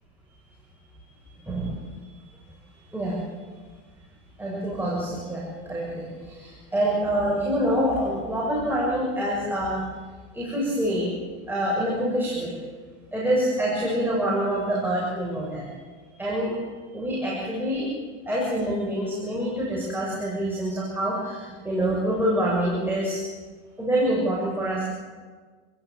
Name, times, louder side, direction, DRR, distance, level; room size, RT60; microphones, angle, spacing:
voice 1, 1.5-1.8 2.9-3.2 4.4-9.8 10.3-11.1 11.5-12.6 13.1-15.6 16.2-16.5 16.9-17.9 18.3-23.2 23.8-24.9, right 1 dB, 5° right, -5 dB, 7.3 m, -26 dB
28.5 x 16.0 x 9.4 m, 1.5 s
supercardioid pair, 120°, 36 cm